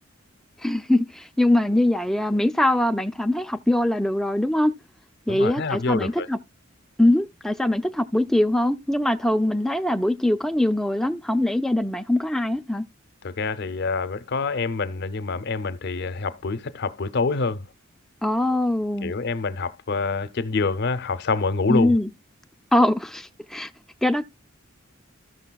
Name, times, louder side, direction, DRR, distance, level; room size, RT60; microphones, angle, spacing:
voice 1, 0.6-4.7 5.3-6.4 7.0-12.8 18.2-19.1 21.7-22.1 22.7-23.7 24.0-24.2, left 1 dB, ahead, 0.4 m, -22 dB
voice 2, 5.3-6.3 13.2-17.7 19.0-22.0, left 4 dB, 55° left, 0.6 m, -26 dB
14.5 x 6.4 x 2.2 m
head